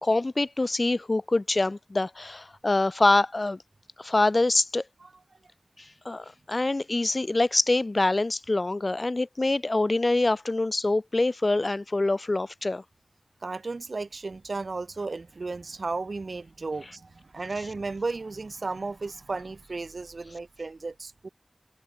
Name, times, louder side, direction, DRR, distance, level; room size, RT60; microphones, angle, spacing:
voice 1, 0.0-3.6 4.0-4.8 6.0-12.8, left 2 dB, 50° left, 0.7 m, -25 dB
voice 2, 13.4-21.3, right 3 dB, 85° right, 0.6 m, -34 dB
wide cardioid pair, 65°, 0 cm